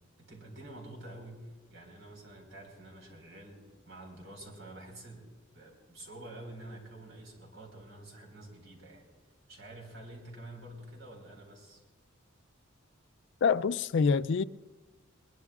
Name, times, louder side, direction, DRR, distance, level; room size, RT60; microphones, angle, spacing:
voice 1, 0.2-9.1 9.5-11.8, right 1 dB, 70° right, 4.5 m, -48 dB
voice 2, 13.4-14.4, left 5 dB, 60° left, 0.4 m, -26 dB
21.5 x 20.5 x 2.4 m
head